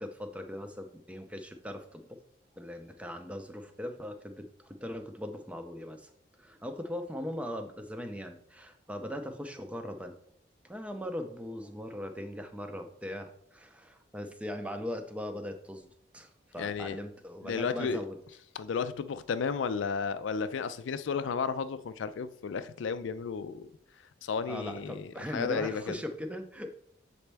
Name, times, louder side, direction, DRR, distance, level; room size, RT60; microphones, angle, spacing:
voice 1, 0.0-2.0 2.6-6.1 6.4-10.2 10.6-15.9 16.1-18.2 24.5-26.7, equal, 5° right, 0.5 m, -39 dB
voice 2, 16.6-17.0 17.4-18.1 18.5-23.7 24.2-26.0, left 5 dB, 75° left, 0.4 m, -33 dB
7.0 x 4.2 x 3.3 m
head